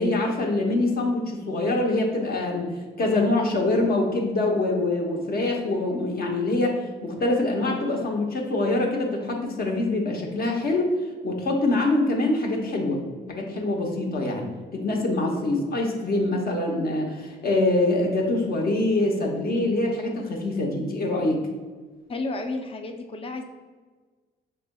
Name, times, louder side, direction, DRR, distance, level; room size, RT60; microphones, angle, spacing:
voice 1, 0.0-2.7 3.0-10.9 11.2-13.0 13.3-21.5, left 2 dB, 50° left, 1 dB, 0.8 m, -24 dB
voice 2, 22.1-23.4, left 2 dB, 30° left, 5 dB, 0.5 m, -31 dB
5.2 x 3.3 x 2.2 m, 1.4 s
cardioid pair, 90°, 20 cm